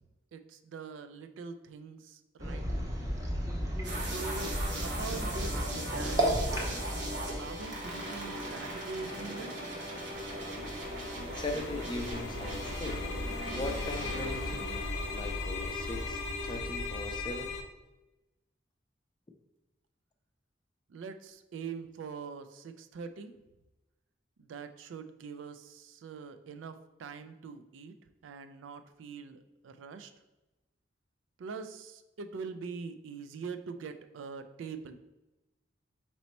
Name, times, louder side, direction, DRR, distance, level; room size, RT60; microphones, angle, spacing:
voice 1, 0.3-2.6 4.0-4.6 4.8-7.0 7.4-9.6 20.9-23.3 24.4-27.9 28.2-30.1 31.4-35.0, right 5 dB, 85° right, 9 dB, 0.4 m, -43 dB
sound 1, 2.4-8.2, equal, 20° right, 0.6 m, -33 dB
sound 2, 3.8-15.3, right 1 dB, 65° right, 1.1 m, -39 dB
sound 3, 9.9-17.6, left 3 dB, 85° left, 0.5 m, -37 dB
voice 2, 11.3-13.0 13.5-17.5, left 2 dB, 25° left, 4 dB, 0.4 m, -39 dB
4.1 x 3.0 x 4.2 m, 1.0 s
head